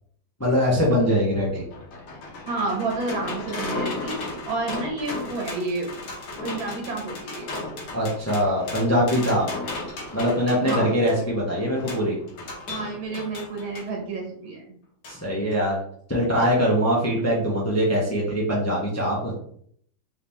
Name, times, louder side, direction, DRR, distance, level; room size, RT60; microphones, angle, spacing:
voice 1, 0.4-1.6 7.9-9.5 10.1-12.2 15.1-15.8 16.1-19.3, equal, 10° left, -4 dB, 0.7 m, -22 dB
sound 1, 1.4-13.9 15.0-15.2 15.5-15.6, left 2 dB, 70° left, 1.8 m, -35 dB
voice 2, 2.5-5.9 6.4-7.5 10.6-10.9 12.7-14.6, right 3 dB, 90° right, 0 dB, 2.2 m, -30 dB
4.8 x 2.9 x 3.5 m, 0.63 s
omnidirectional pair, 2.1 m